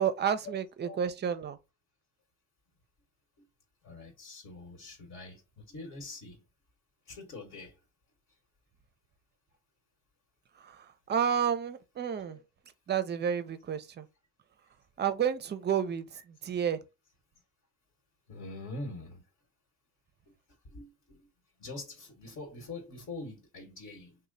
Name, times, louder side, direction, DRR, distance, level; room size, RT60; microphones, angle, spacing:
voice 1, 0.0-1.6 11.1-12.4 12.9-14.0 15.0-16.0 16.4-16.8, right 8 dB, 30° right, 0.5 m, -30 dB
voice 2, 3.8-6.4 7.0-7.8 12.1-12.4 18.3-19.2 20.6-21.3 21.6-24.2, left 2 dB, 50° left, 1.4 m, -44 dB
3.0 x 2.2 x 3.9 m
supercardioid pair, 90°, 36 cm